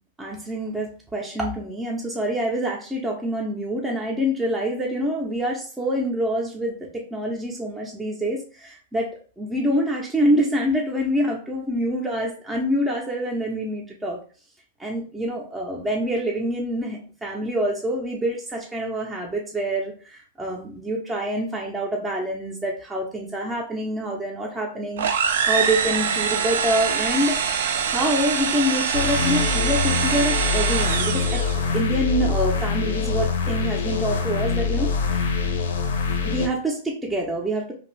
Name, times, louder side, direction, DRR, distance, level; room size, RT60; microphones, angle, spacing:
voice 1, 0.2-14.2 14.8-27.4 27.9-31.4 31.7-35.2 36.2-37.7, equal, 10° right, -2 dB, 0.5 m, -26 dB
sound 1, 25.0-31.7, right 7 dB, 75° right, 0.3 m, -24 dB
sound 2, 28.9-36.5, left 5 dB, 85° left, 0.5 m, -24 dB
2.5 x 2.3 x 3.0 m, 0.41 s
hypercardioid pair, 130°, 0 cm